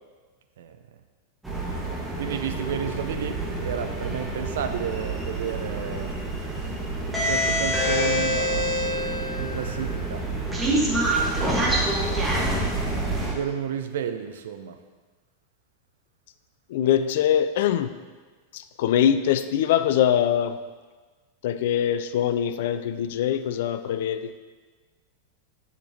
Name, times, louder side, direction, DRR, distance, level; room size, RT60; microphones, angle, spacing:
sound 1, 1.4-13.3, right 1 dB, 5° right, 1.4 m, -26 dB
voice 1, 2.2-6.1 7.2-8.7 9.4-10.2 13.3-14.8, right 8 dB, 60° right, 7 dB, 0.6 m, -31 dB
voice 2, 16.7-17.9 18.5-20.6 21.4-24.3, left 10 dB, 55° left, 12 dB, 0.4 m, -23 dB
10.5 x 6.6 x 2.8 m, 1.4 s
figure-of-eight pair, 90°, 0 cm